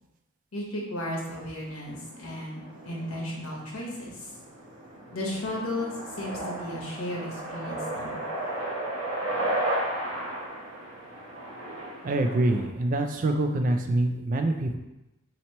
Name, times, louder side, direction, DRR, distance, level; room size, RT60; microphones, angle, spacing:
voice 1, 0.5-3.9 5.1-8.2, left 1 dB, 80° left, -3 dB, 1.1 m, -34 dB
sound 1, 1.6-12.7, right 1 dB, 70° right, 1.0 m, -34 dB
voice 2, 12.0-14.8, right 2 dB, 40° right, 5 dB, 0.3 m, -25 dB
2.9 x 2.9 x 4.2 m, 0.93 s
head